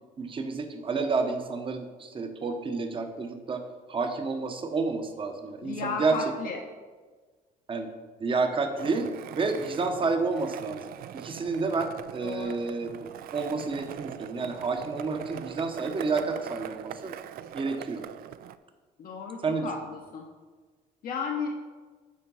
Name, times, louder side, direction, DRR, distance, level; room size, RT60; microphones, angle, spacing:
voice 1, 0.2-3.6 3.9-6.2 7.7-7.9 8.2-17.2 17.5-18.0 19.4-19.7, right 4 dB, 30° right, 6 dB, 0.9 m, -30 dB
voice 2, 5.6-6.6 12.2-12.6 19.0-20.3 21.0-21.5, left 5 dB, 55° left, 1 dB, 0.8 m, -34 dB
Skateboard, 8.8-18.6, right 11 dB, 60° right, 0.4 m, -42 dB
8.6 x 4.5 x 5.5 m, 1.4 s
cardioid pair, 110°, 17 cm